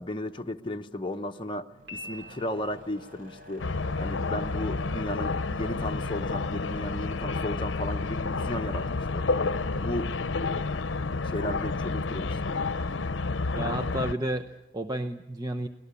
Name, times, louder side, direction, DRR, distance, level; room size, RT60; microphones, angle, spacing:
voice 1, 0.0-3.7 4.0-9.3 9.8-10.1 11.2-12.6, left 1 dB, 25° left, 1.0 m, -35 dB
sound 1, 1.7-9.0, right 1 dB, 50° right, 4.0 m, -50 dB
Piano, 1.9-3.0, left 1 dB, 85° right, 6.2 m, -43 dB
sound 2, 3.6-14.1, left 3 dB, 80° left, 0.7 m, -30 dB
voice 2, 13.5-15.7, right 1 dB, 20° right, 0.8 m, -32 dB
24.5 x 19.0 x 8.4 m
head